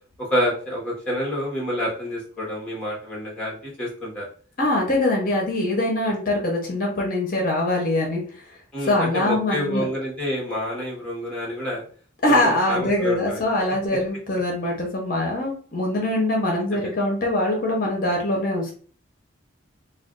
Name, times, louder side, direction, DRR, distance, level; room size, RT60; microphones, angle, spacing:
voice 1, 0.2-4.3 8.7-11.8 12.3-13.5 16.7-16.9, equal, 5° left, -5 dB, 1.0 m, -28 dB
voice 2, 4.6-8.2 8.9-9.8 12.2-18.7, left 1 dB, 45° left, -1 dB, 0.7 m, -23 dB
2.4 x 2.3 x 3.6 m, 0.44 s
head